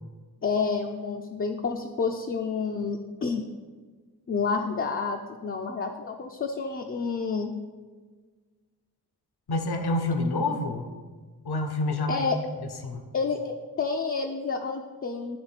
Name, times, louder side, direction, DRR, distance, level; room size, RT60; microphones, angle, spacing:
voice 1, 0.4-3.4 4.3-7.5 12.1-12.4 13.1-15.4, left 5 dB, 35° left, 2 dB, 0.5 m, -29 dB
voice 2, 9.5-10.8 11.4-12.2 12.8-13.0, left 2 dB, 75° left, 5 dB, 0.8 m, -27 dB
9.5 x 3.5 x 4.1 m, 1.5 s
cardioid pair, 55°, 39 cm